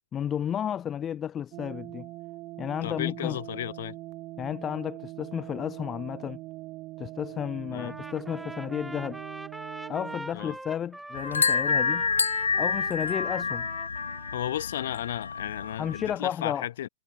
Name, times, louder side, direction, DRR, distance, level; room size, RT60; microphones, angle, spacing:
voice 1, 0.1-2.1 2.6-3.4 4.4-6.4 7.0-9.2 9.9-12.1 12.6-13.7 15.8-16.7, left 9 dB, 20° left, 1.1 m, -32 dB
sound 1, 1.5-10.2, right 19 dB, 35° right, 4.2 m, -42 dB
voice 2, 2.8-4.0 7.7-8.0 10.3-10.6 14.3-16.9, left 12 dB, 55° left, 5.5 m, -34 dB
Trumpet, 7.8-14.7, right 1 dB, 5° right, 6.5 m, -43 dB
sound 2, 11.1-16.2, left 5 dB, 75° left, 0.7 m, -28 dB
figure-of-eight pair, 110°, 0 cm